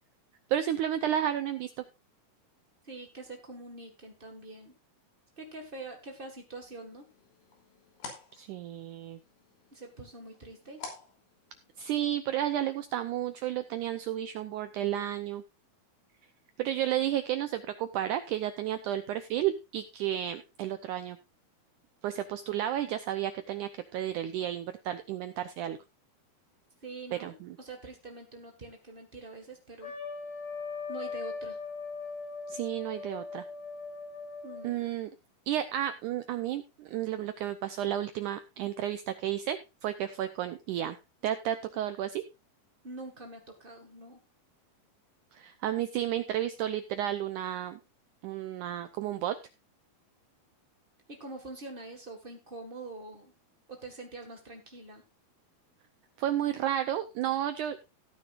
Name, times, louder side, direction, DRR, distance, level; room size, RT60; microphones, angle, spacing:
voice 1, 0.5-1.7 8.3-9.2 11.8-15.4 16.6-21.2 22.0-25.8 27.1-27.6 32.5-33.4 34.6-35.1 35.5-41.0 41.2-42.2 45.3-47.8 48.2-49.3 56.2-57.8, right 11 dB, 80° right, 10 dB, 1.8 m, -32 dB
voice 2, 2.8-4.7 5.4-7.0 9.7-10.8 26.8-29.9 30.9-31.6 34.4-34.8 42.8-44.2 51.1-53.3 53.7-55.0, right 2 dB, 50° right, 2 dB, 0.6 m, -45 dB
sound 1, 6.6-12.0, left 4 dB, 90° left, 5.2 m, -50 dB
Trumpet, 29.8-34.8, left 4 dB, 60° left, 5.4 m, -39 dB
17.0 x 9.5 x 2.5 m, 0.26 s
omnidirectional pair, 4.3 m